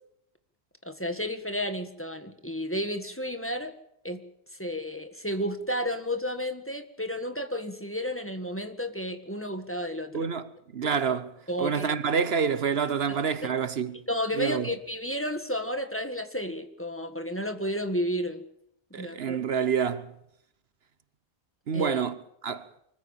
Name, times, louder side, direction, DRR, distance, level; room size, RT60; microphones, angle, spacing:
voice 1, 0.8-3.7 4.0-4.2 4.6-10.3 11.5-11.9 13.1-13.2 14.1-18.4 18.9-19.4 21.7-22.0, equal, 10° left, 1.6 m, -32 dB
voice 2, 10.1-14.0 14.4-14.7 18.9-20.1 21.7-22.2 22.4-22.7, right 6 dB, 65° right, 1.2 m, -28 dB
25.0 x 15.0 x 8.8 m
omnidirectional pair, 1.1 m